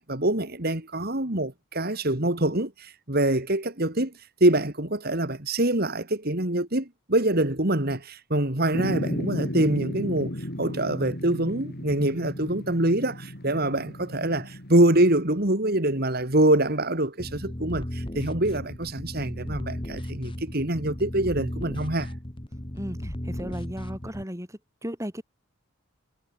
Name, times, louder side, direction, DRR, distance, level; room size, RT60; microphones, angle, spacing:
voice 1, 0.0-4.1 4.4-22.1, right 1 dB, 45° right, 3.2 m, -25 dB
sound 1, 8.7-15.2, equal, 50° left, 4.9 m, -34 dB
sound 2, 17.2-24.2, equal, 25° left, 2.0 m, -35 dB
voice 2, 22.7-24.5 24.8-25.2, equal, 15° right, 5.6 m, -35 dB
head